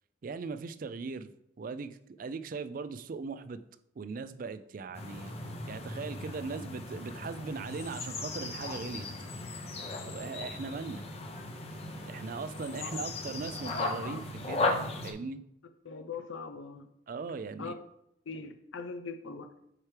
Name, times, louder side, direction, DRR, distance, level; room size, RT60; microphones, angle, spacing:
voice 1, 0.2-1.3 1.6-3.6 4.0-5.3 5.7-9.1 10.0-11.0 12.1-15.4 17.1-17.8, right 4 dB, 45° right, 0.3 m, -39 dB
sound 1, 4.9-15.1, left 2 dB, 30° left, 0.7 m, -37 dB
voice 2, 15.8-16.9 17.6-17.7 18.3-19.5, left 4 dB, 85° left, 0.5 m, -41 dB
7.4 x 4.7 x 3.3 m
head